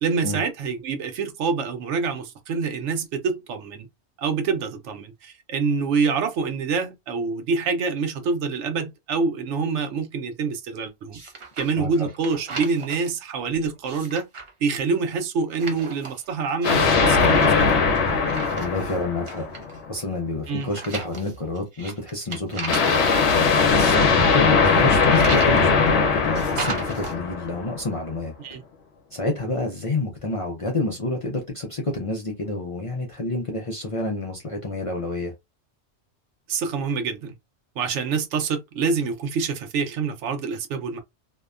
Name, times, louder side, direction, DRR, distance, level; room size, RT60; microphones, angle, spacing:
voice 1, 0.0-3.9 4.2-11.2 11.6-14.3 14.6-17.9 20.5-20.7 23.9-24.2 28.4-28.6 36.5-37.3 37.8-41.0, right 5 dB, 85° right, 0.9 m, -26 dB
sound 1, 11.1-11.8 12.1-13.1 13.7-14.5 15.5-16.3 16.6-19.0 19.3-19.8 20.6-23.2 24.6-25.6 26.3-27.1, right 4 dB, 40° right, 0.4 m, -35 dB
voice 2, 11.8-12.1 18.5-19.5 19.9-28.3 29.1-35.3, left 2 dB, 45° left, 0.4 m, -29 dB
sound 2, 16.6-19.8 22.7-27.8, left 5 dB, 75° left, 0.9 m, -20 dB
2.7 x 2.1 x 2.3 m
omnidirectional pair, 1.2 m